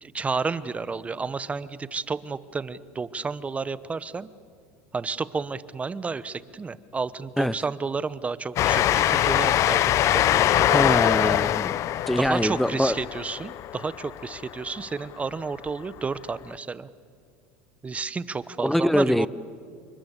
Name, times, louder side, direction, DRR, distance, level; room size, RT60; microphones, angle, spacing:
voice 1, 0.0-4.3 4.9-11.0 12.2-16.9 17.8-19.3, right 4 dB, 20° right, 17 dB, 1.0 m, -31 dB
Train, 8.6-14.7, left 12 dB, 50° left, 0.7 m, -23 dB
voice 2, 10.7-13.0 18.6-19.3, left 1 dB, ahead, 19 dB, 0.8 m, -24 dB
28.0 x 24.0 x 8.4 m, 2.3 s
supercardioid pair, 100°, 7 cm